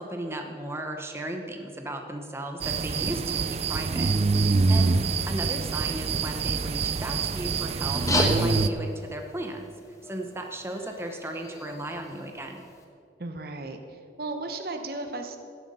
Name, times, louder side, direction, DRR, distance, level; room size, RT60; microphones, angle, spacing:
voice 1, 0.0-4.1 4.7-4.9 5.3-9.7 10.0-12.6, right 1 dB, 15° right, 3 dB, 0.8 m, -36 dB
sound 1, 2.6-8.7, right 4 dB, 35° right, 0.4 m, -25 dB
voice 2, 4.5-5.0 13.2-15.4, right 2 dB, 55° right, 6 dB, 1.0 m, -35 dB
sound 2, 7.9-12.8, left 1 dB, 20° left, 1.2 m, -34 dB
16.5 x 7.7 x 5.5 m, 2.5 s
head